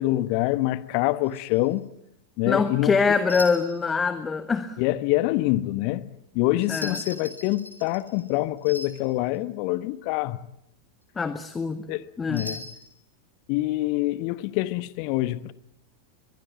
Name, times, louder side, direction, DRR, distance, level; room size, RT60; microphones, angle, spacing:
voice 1, 0.0-1.9 2.4-3.0 4.8-6.1 6.3-10.4 11.9-12.0 12.3-12.6 13.5-15.5, left 17 dB, 45° left, 1.1 m, -25 dB
sound 1, 1.3-1.6 3.3-3.9 6.6-8.3 8.6-9.1 12.3-12.9, left 1 dB, 85° left, 3.0 m, -38 dB
voice 2, 2.5-4.8 6.7-7.0 11.2-11.8 12.2-12.5, left 5 dB, 15° left, 1.3 m, -24 dB
23.0 x 23.0 x 8.4 m
figure-of-eight pair, 90°, 0 cm